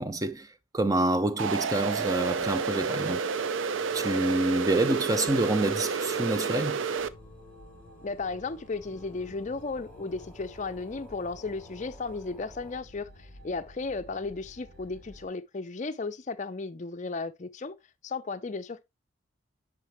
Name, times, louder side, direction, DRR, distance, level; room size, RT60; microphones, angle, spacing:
voice 1, 0.0-3.2 3.9-6.8, right 2 dB, 15° right, 0.5 m, -27 dB
sound 1, 1.4-7.1, right 5 dB, 70° right, 0.5 m, -30 dB
sound 2, 3.3-12.8, left 2 dB, 5° left, 0.9 m, -52 dB
sound 3, 7.0-15.3, equal, 55° right, 3.5 m, -52 dB
voice 2, 8.0-17.8 18.0-18.8, left 3 dB, 35° left, 0.5 m, -35 dB
9.1 x 5.1 x 3.0 m
head